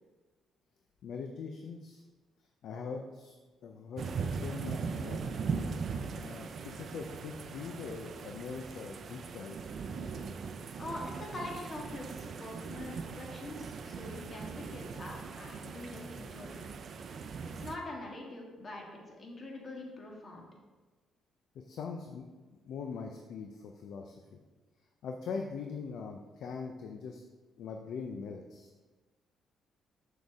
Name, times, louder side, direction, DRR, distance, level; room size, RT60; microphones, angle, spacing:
voice 1, 1.0-2.0 2.6-3.4 3.6-5.4 6.1-9.6 21.5-24.4 25.0-27.2 27.6-28.7, left 5 dB, 75° left, 3 dB, 0.6 m, -42 dB
sound 1, 4.0-17.8, right 5 dB, 55° right, 0.5 m, -40 dB
voice 2, 10.8-16.7 17.5-20.5, left 2 dB, 40° left, -1 dB, 1.7 m, -44 dB
6.7 x 6.4 x 3.5 m, 1.3 s
cardioid pair, 90°, 0 cm